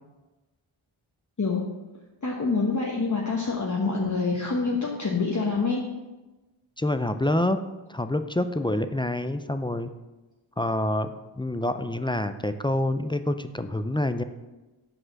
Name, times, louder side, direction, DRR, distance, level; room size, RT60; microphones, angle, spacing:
voice 1, 2.2-5.8, left 4 dB, 35° left, -1 dB, 1.0 m, -26 dB
voice 2, 6.8-7.6 7.9-9.9 10.6-14.2, left 1 dB, 10° left, 10 dB, 0.3 m, -27 dB
6.2 x 4.9 x 6.4 m, 1.1 s
wide cardioid pair, 55°, 50 cm